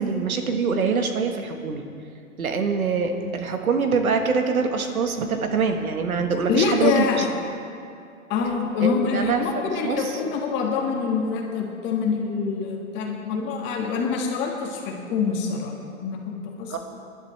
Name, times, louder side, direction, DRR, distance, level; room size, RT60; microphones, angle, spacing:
voice 1, 0.0-1.8 2.4-7.2 8.8-10.1 16.7-16.8, right 5 dB, 80° right, 5 dB, 1.5 m, -24 dB
voice 2, 6.5-7.2 8.3-15.7 16.0-16.8, left 5 dB, 25° left, 0 dB, 1.8 m, -25 dB
19.5 x 11.5 x 3.3 m, 2.4 s
hypercardioid pair, 135°, 42 cm